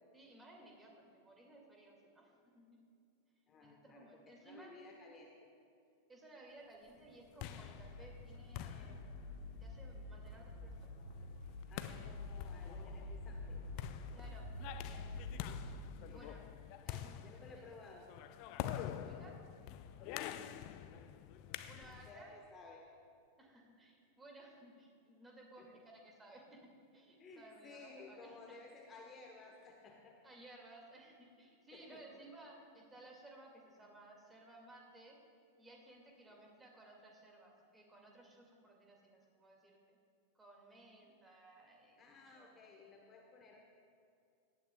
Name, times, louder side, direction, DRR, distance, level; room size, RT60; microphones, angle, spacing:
voice 1, 0.1-2.8 3.6-4.7 6.1-9.1 9.6-10.7 14.1-15.1 15.5-15.8 16.1-16.4 16.8-17.4 19.0-19.3 21.7-22.4 23.4-26.6 26.9-28.5 30.2-35.2 35.6-40.0 40.3-42.5, right 2 dB, 15° right, 0 dB, 2.3 m, -58 dB
voice 2, 3.5-5.5 11.7-13.6 15.9-16.3 17.2-18.2 20.0-20.9 21.8-22.9 25.6-25.8 27.2-30.2 31.7-32.2 36.3-36.4 41.0-41.1 42.0-43.6, left 3 dB, 25° left, 1 dB, 1.2 m, -57 dB
sound 1, 7.0-22.2, left 11 dB, 45° left, 0.5 m, -47 dB
sound 2, 7.8-15.9, left 2 dB, 50° right, 2.4 m, -48 dB
18.0 x 12.0 x 2.4 m, 2.5 s
figure-of-eight pair, 90°, 0 cm